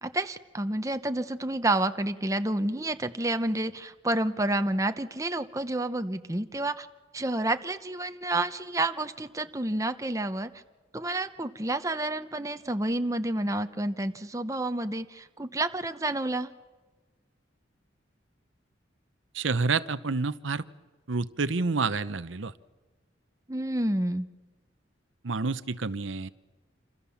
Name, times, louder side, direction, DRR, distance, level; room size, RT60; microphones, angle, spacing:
voice 1, 0.0-6.9 7.1-10.5 10.9-16.5 23.5-24.3, right 2 dB, 15° right, 9 dB, 0.9 m, -29 dB
voice 2, 19.3-20.6 21.1-22.5 25.2-26.3, right 4 dB, 80° right, 13 dB, 0.8 m, -28 dB
27.5 x 27.0 x 7.2 m, 1.3 s
head